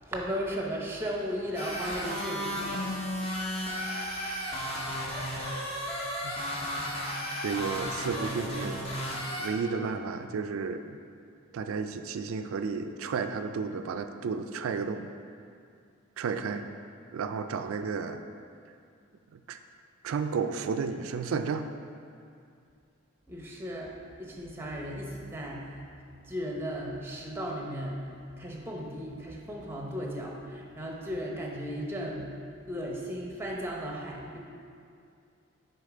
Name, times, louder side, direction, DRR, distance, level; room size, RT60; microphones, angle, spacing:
voice 1, 0.0-2.7 23.3-25.8 26.3-28.1 28.4-32.3 32.7-34.4, equal, 10° right, -1 dB, 0.7 m, -36 dB
sound 1, 1.6-9.5, equal, 25° left, 0.8 m, -34 dB
voice 2, 7.4-8.8 9.4-11.0 11.5-15.1 16.2-16.7 17.1-18.2 19.3-19.6 20.0-21.7, right 5 dB, 75° right, 8 dB, 0.3 m, -32 dB
6.5 x 4.6 x 4.9 m, 2.4 s
head